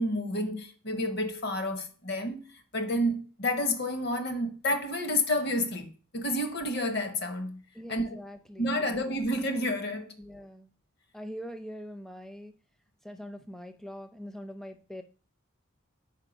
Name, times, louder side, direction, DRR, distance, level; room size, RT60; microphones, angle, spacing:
voice 1, 0.0-2.4 2.7-7.6 7.9-8.2 8.6-10.1, left 1 dB, 50° left, 0.8 m, -30 dB
voice 2, 7.7-9.2 10.2-10.7 11.1-12.5 13.0-15.0, equal, ahead, 0.4 m, -43 dB
4.5 x 4.3 x 5.1 m
head